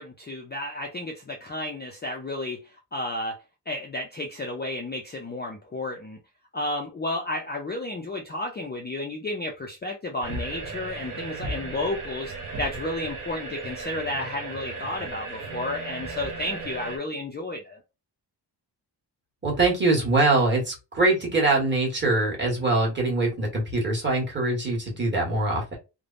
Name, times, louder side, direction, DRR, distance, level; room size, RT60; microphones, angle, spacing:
voice 1, 0.0-6.2 6.5-17.8, left 1 dB, 25° left, 0.4 m, -32 dB
sound 1, 10.2-17.0, right 3 dB, 45° right, 0.7 m, -36 dB
voice 2, 19.4-25.8, right 2 dB, 25° right, 1.3 m, -23 dB
3.3 x 2.1 x 2.4 m
wide cardioid pair, 165°, 43 cm